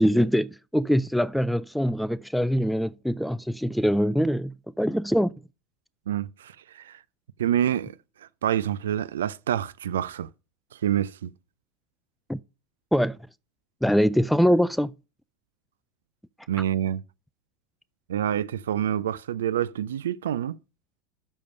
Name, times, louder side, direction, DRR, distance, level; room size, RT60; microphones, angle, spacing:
voice 1, 0.0-5.3 12.3-12.4 12.9-13.2 13.8-14.9, equal, ahead, 0.3 m, -23 dB
voice 2, 6.1-7.0 7.4-10.3 10.7-11.3 16.5-17.0 18.1-20.6, right 10 dB, 80° right, 0.3 m, -27 dB
6.7 x 5.4 x 6.4 m
hypercardioid pair, 85°, 0 cm